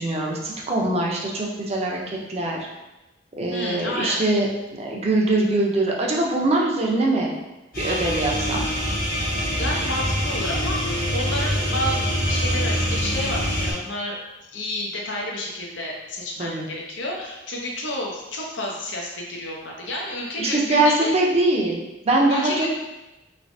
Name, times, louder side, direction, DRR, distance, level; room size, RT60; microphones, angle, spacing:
voice 1, 0.0-2.7 3.4-4.5 4.7-7.3 7.8-8.6 16.4-16.7 20.4-22.7, right 2 dB, 35° right, -1 dB, 0.5 m, -22 dB
voice 2, 3.5-4.2 9.5-14.2 14.5-21.1 22.3-22.7, left 1 dB, 85° left, -2 dB, 0.7 m, -30 dB
sound 1, 7.7-13.7, equal, 50° left, 1.0 m, -24 dB
3.2 x 3.1 x 2.6 m, 1.0 s
head